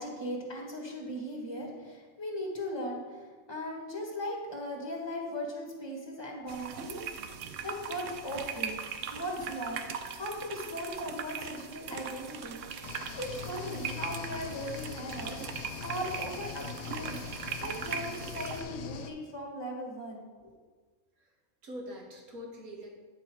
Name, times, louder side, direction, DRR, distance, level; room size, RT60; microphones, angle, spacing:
voice 1, 0.0-7.3 7.6-8.8 9.1-9.8 10.1-20.5, equal, 20° left, -1 dB, 1.4 m, -38 dB
sound 1, 6.5-18.6, right 7 dB, 70° right, 0.9 m, -40 dB
voice 2, 7.5-8.1 21.6-23.0, equal, 90° right, -1 dB, 1.9 m, -45 dB
sound 2, 12.8-19.1, left 8 dB, 85° left, 1.1 m, -42 dB
9.5 x 4.6 x 4.6 m, 1.4 s
omnidirectional pair, 1.5 m